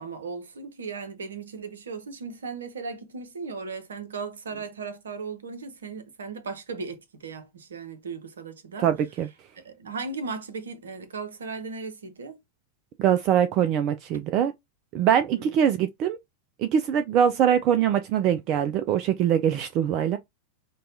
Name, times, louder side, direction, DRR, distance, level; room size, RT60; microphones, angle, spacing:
voice 1, 0.0-8.9 9.6-12.4 15.3-15.5, right 4 dB, 65° right, 0.8 m, -37 dB
voice 2, 8.8-9.3 13.0-14.5 14.9-16.2 16.6-20.2, right 9 dB, 40° right, 0.3 m, -23 dB
5.2 x 2.3 x 2.7 m
figure-of-eight pair, 90°, 0 cm